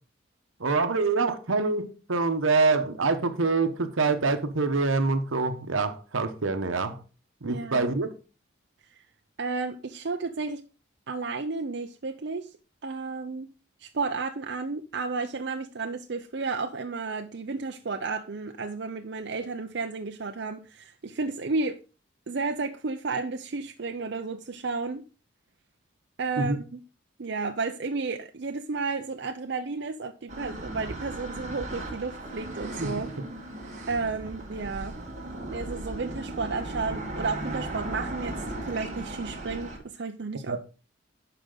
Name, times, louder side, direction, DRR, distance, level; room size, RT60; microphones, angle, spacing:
voice 1, 0.6-7.0 7.4-8.1 26.4-26.6 32.8-32.9 40.5-40.6, right 3 dB, 80° right, 1.0 m, -25 dB
voice 2, 7.4-7.9 9.4-10.6 11.1-12.5 12.8-13.5 13.8-21.8 22.3-25.0 26.2-26.8 27.2-33.1 33.9-35.0 35.5-40.6, right 4 dB, 60° right, 0.5 m, -32 dB
sound 1, 30.3-39.8, right 1 dB, 35° right, 1.9 m, -37 dB
11.5 x 4.9 x 3.9 m
head